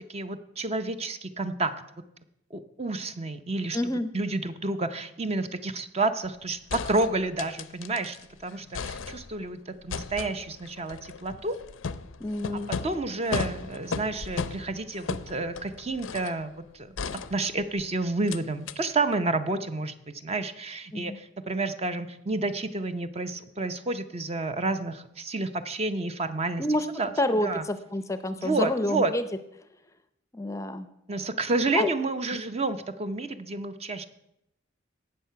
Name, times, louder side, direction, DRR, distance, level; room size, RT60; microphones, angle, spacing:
voice 1, 0.0-1.7 2.5-3.8 4.1-8.2 8.4-11.6 12.8-16.9 17.3-26.6 27.0-27.1 27.4-27.6 28.4-29.1 31.1-34.0, right 2 dB, 30° right, 10 dB, 0.6 m, -30 dB
voice 2, 3.7-4.1 12.2-12.7 20.9-21.2 26.6-26.9 27.2-29.3 30.3-30.9 31.7-31.9, left 1 dB, 15° left, 11 dB, 0.5 m, -28 dB
sound 1, 6.2-6.3 6.7-8.2 8.5-9.5 9.9-16.4 17.0-17.8 18.3-18.4 18.7-18.8, left 5 dB, 85° left, 0.6 m, -36 dB
17.5 x 6.6 x 5.7 m, 0.83 s
head